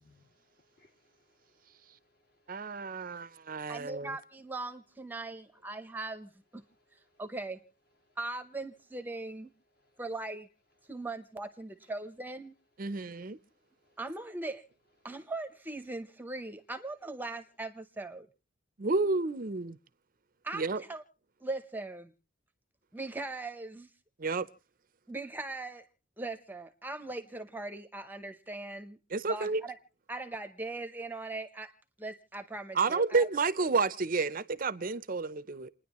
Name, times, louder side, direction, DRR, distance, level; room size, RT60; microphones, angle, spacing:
voice 1, 0.0-2.8 6.6-7.2 8.0-8.2 9.8-10.0 13.8-14.0, left 2 dB, 50° left, 2.1 m, -70 dB
voice 2, 2.5-4.1 12.8-13.4 18.8-19.8 20.5-20.8 24.2-24.5 29.1-29.6 32.7-35.7, right 4 dB, 40° right, 0.6 m, -30 dB
voice 3, 3.7-6.6 6.9-7.6 8.2-9.5 10.0-10.5 10.9-12.5 14.0-14.6 15.0-18.3 20.4-21.0 21.4-22.1 22.9-23.9 25.1-25.8 26.2-29.0 29.3-29.8 30.1-31.7 32.0-33.3, right 2 dB, 10° right, 0.8 m, -40 dB
29.0 x 10.0 x 3.0 m
head